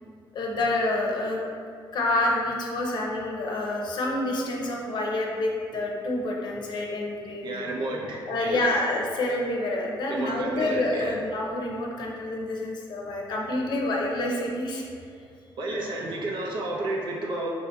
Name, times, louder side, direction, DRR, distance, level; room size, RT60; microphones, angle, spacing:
voice 1, 0.3-1.4 1.9-7.5 8.3-14.8, left 2 dB, 55° left, -1 dB, 0.7 m, -28 dB
voice 2, 7.4-8.6 10.1-11.1 15.6-17.5, right 2 dB, 65° right, -2 dB, 0.7 m, -31 dB
4.6 x 2.7 x 3.4 m, 2.4 s
cardioid pair, 140°, 9 cm